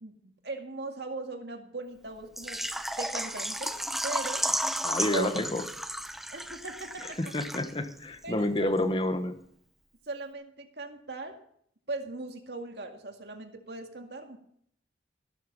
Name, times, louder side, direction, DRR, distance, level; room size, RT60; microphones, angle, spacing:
voice 1, 0.0-2.6 3.0-3.8 4.0-4.5 5.1-5.4 6.3-7.2 8.2-8.7 10.1-11.4 11.9-14.4, right 2 dB, 65° right, 4 dB, 2.1 m, -39 dB
Water / Liquid, 2.4-8.0 8.2-8.3 8.8-8.9, right 1 dB, ahead, 0.7 m, -33 dB
voice 2, 4.8-5.6 7.2-9.4, left 1 dB, 30° left, 9 dB, 1.3 m, -29 dB
14.5 x 12.5 x 5.4 m, 0.65 s
head